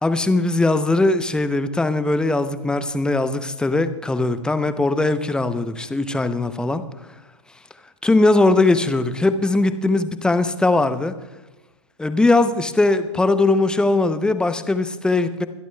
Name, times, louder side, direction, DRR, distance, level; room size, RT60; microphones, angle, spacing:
voice 1, 0.0-6.8 8.0-11.1 12.0-15.5, left 2 dB, 5° left, 11 dB, 0.7 m, -20 dB
23.5 x 12.5 x 2.3 m, 1.1 s
figure-of-eight pair, 105°, 16 cm